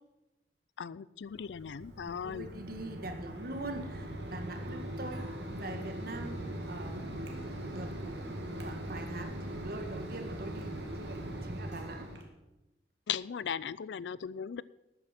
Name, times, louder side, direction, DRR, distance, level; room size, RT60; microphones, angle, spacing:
voice 1, 0.8-2.5 13.1-14.6, left 8 dB, 80° left, 20 dB, 0.4 m, -37 dB
Mechanisms, 1.3-12.2, right 1 dB, 70° right, 2.1 m, -40 dB
voice 2, 2.1-12.1, right 2 dB, 55° right, 6 dB, 1.7 m, -44 dB
13.0 x 9.3 x 5.8 m, 1.0 s
head